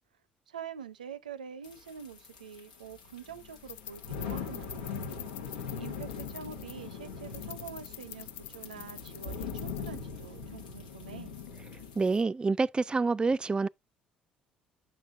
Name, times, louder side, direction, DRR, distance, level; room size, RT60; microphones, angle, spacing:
voice 1, 0.5-4.9 5.8-11.4, right 7 dB, 90° right, 0.5 m, -45 dB
sound 1, 1.6-12.2, left 5 dB, 85° left, 1.1 m, -41 dB
sound 2, 3.3-10.5, left 12 dB, 65° left, 0.4 m, -48 dB
voice 2, 12.0-13.7, right 4 dB, 20° right, 0.4 m, -27 dB
7.6 x 5.8 x 3.6 m
hypercardioid pair, 55°, 4 cm